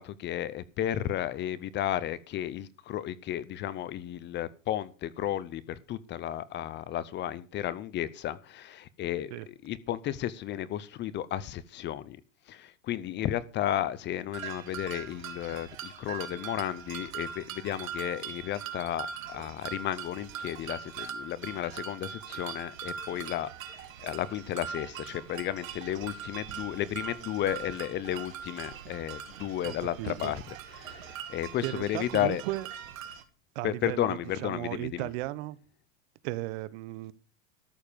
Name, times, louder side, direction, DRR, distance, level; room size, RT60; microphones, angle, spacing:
voice 1, 0.0-12.2 12.5-23.5 24.0-32.4 33.6-35.1, left 12 dB, 25° left, 0.7 m, -33 dB
sound 1, 14.3-33.2, right 7 dB, 80° right, 2.3 m, -41 dB
voice 2, 29.6-30.3 31.6-32.7 33.5-35.6 36.2-37.1, right 17 dB, 55° right, 1.1 m, -36 dB
13.5 x 7.2 x 6.8 m
supercardioid pair, 130°, 40 cm